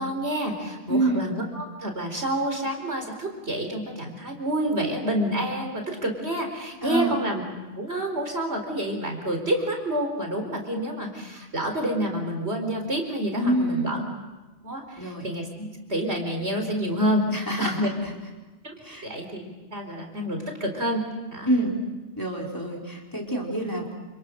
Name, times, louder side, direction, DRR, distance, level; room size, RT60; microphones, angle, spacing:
voice 1, 0.0-7.4 7.8-14.0 14.6-17.9 18.6-18.7 19.0-21.5, right 1 dB, 65° right, 3 dB, 4.7 m, -28 dB
voice 2, 0.9-1.2 6.8-7.2 13.3-14.1 15.0-15.3 17.3-18.2 18.8-19.1 21.4-21.8 22.2-24.0, right 1 dB, 15° left, -2 dB, 4.6 m, -27 dB
29.0 x 27.5 x 6.6 m, 1.2 s
omnidirectional pair, 1.2 m